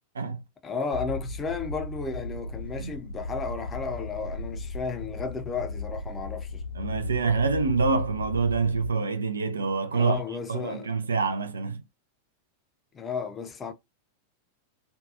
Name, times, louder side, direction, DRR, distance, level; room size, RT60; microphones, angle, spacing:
voice 1, 0.6-6.6 9.9-10.9 12.9-13.7, left 5 dB, 20° left, 0.5 m, -33 dB
sound 1, 0.9-8.9, left 2 dB, 80° left, 0.6 m, -36 dB
voice 2, 6.8-10.2 10.5-11.8, right 4 dB, 75° right, 0.3 m, -26 dB
2.6 x 2.2 x 2.3 m
figure-of-eight pair, 90°, 0 cm